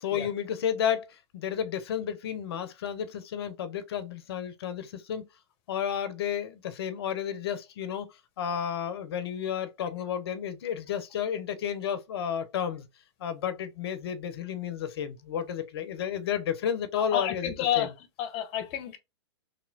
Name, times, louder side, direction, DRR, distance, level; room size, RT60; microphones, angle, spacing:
voice 1, 0.0-5.3 5.7-8.1 8.4-12.9 13.2-17.9, left 8 dB, 65° left, 0.6 m, -32 dB
voice 2, 16.9-17.9 18.2-19.0, left 10 dB, 40° left, 0.8 m, -30 dB
3.1 x 2.9 x 2.7 m
hypercardioid pair, 110°, 14 cm